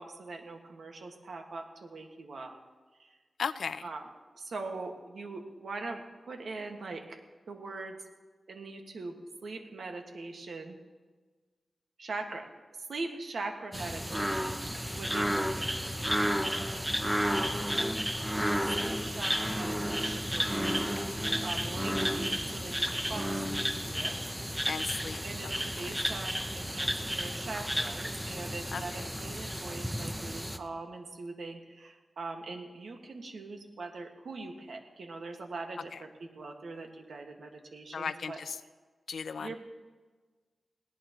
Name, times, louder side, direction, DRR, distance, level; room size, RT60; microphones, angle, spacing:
voice 1, 0.0-2.5 3.8-4.1 4.3-7.2 7.5-8.0 8.5-10.8 12.0-12.5 12.8-14.6 14.9-16.2 17.2-17.7 18.8-20.9 21.4-24.5 25.2-38.4 39.4-39.6, right 3 dB, 70° right, 3 dB, 1.7 m, -42 dB
voice 2, 3.4-3.8 24.7-25.2 28.7-28.8 37.9-38.3 39.1-39.5, left 6 dB, 75° left, 13 dB, 0.5 m, -35 dB
sound 1, 13.7-30.6, equal, 5° right, 0.7 m, -32 dB
20.5 x 17.5 x 3.0 m, 1.4 s
wide cardioid pair, 160°, 0 cm